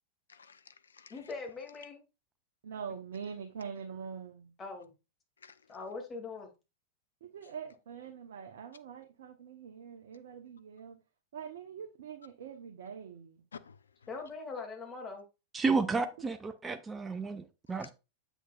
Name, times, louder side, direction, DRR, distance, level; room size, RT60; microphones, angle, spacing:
voice 1, 0.3-1.3 5.4-5.8 13.5-13.8 17.7-17.9, left 6 dB, 75° left, 0.5 m, -52 dB
voice 2, 1.1-2.0 4.6-4.9 5.7-6.5 14.1-15.2, left 4 dB, 25° left, 2.3 m, -41 dB
voice 3, 2.6-4.5 7.2-11.0 11.3-13.4 15.7-15.9, right 7 dB, 60° right, 0.8 m, -44 dB
voice 4, 15.5-17.9, right 4 dB, 15° right, 0.5 m, -32 dB
7.9 x 6.3 x 2.4 m
figure-of-eight pair, 95°, 0 cm